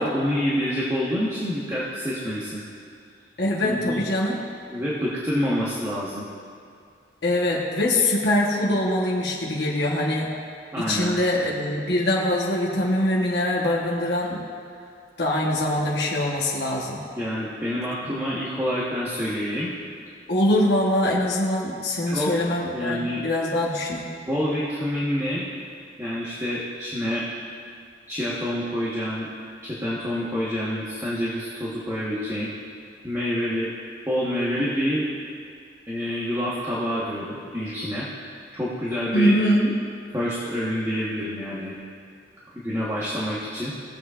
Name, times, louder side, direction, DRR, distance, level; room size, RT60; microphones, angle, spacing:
voice 1, 0.0-2.6 3.6-4.0 4.7-6.3 10.7-11.2 17.2-19.7 22.1-22.3 22.7-23.2 24.3-25.4 26.0-27.2 28.1-29.3 29.6-32.5 33.0-33.7 34.1-35.1 35.9-38.1 38.5-39.4 40.1-41.7 42.5-43.7, equal, 15° right, -8 dB, 1.2 m, -27 dB
voice 2, 3.4-4.4 7.2-10.3 10.8-14.4 15.2-17.0 20.3-24.1 39.1-39.7, left 1 dB, 70° left, -4 dB, 1.1 m, -23 dB
17.5 x 7.6 x 2.4 m, 2.3 s
head